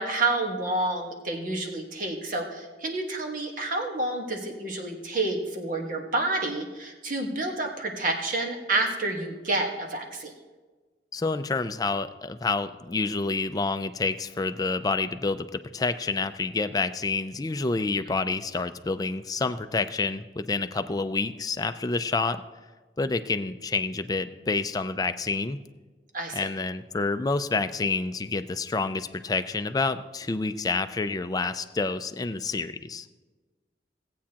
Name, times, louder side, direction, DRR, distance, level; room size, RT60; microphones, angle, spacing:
voice 1, 0.0-10.3 26.1-26.5, right 2 dB, 50° right, 2 dB, 1.5 m, -29 dB
voice 2, 11.1-22.4 23.0-25.6 26.3-33.1, left 3 dB, 20° left, 9 dB, 0.4 m, -28 dB
17.0 x 8.4 x 2.9 m, 1.3 s
head